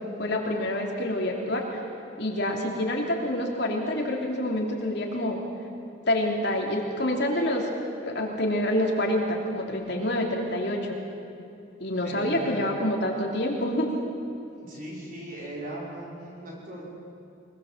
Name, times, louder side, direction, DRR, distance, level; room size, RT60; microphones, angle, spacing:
voice 1, 0.2-1.8 2.2-5.4 6.1-7.7 8.0-11.0 11.8-13.9, left 1 dB, 55° left, 0 dB, 3.2 m, -27 dB
voice 2, 12.0-12.7 14.6-16.9, right 1 dB, 45° right, -4 dB, 5.7 m, -38 dB
23.0 x 21.5 x 7.4 m, 2.7 s
head